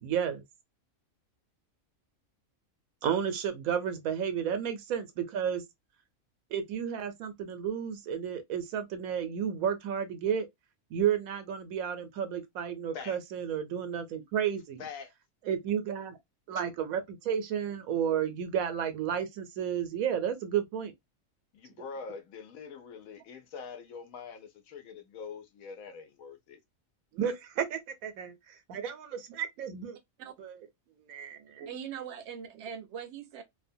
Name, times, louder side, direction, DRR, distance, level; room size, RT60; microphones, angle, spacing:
voice 1, 0.0-0.4 3.0-5.6 6.5-10.5 10.9-14.9 15.5-16.2 16.5-20.9 27.1-30.0 30.4-30.6 31.0-31.7, right 8 dB, 90° right, 1.1 m, -32 dB
voice 2, 14.8-15.1 21.5-26.6, left 5 dB, 85° left, 1.1 m, -44 dB
voice 3, 31.7-33.4, right 8 dB, 65° right, 0.8 m, -41 dB
2.8 x 2.2 x 2.5 m
omnidirectional pair, 1.4 m